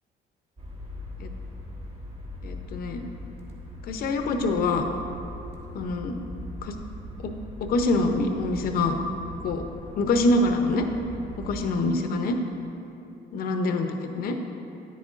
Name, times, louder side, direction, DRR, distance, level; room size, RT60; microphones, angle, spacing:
sound 1, 0.6-11.6, left 1 dB, 35° right, 1.3 m, -40 dB
voice 1, 2.4-3.0 3.9-4.8 5.7-6.2 6.6-6.7 7.2-7.3 7.7-9.0 9.4-9.6 10.0-10.8 11.4-12.4 13.3-14.3, left 2 dB, 60° left, 5 dB, 0.7 m, -25 dB
9.2 x 8.2 x 2.5 m, 2.7 s
cardioid pair, 110°, 17 cm